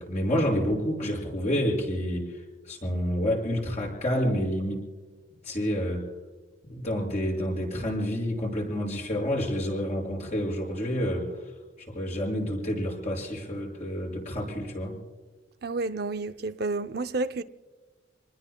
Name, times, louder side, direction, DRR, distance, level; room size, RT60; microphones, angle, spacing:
voice 1, 0.0-4.8 5.4-6.1 6.6-11.4 11.9-15.0, equal, 40° left, 6.4 m, -29 dB
voice 2, 15.6-17.4, right 3 dB, 55° right, 0.6 m, -30 dB
28.5 x 20.0 x 2.3 m
head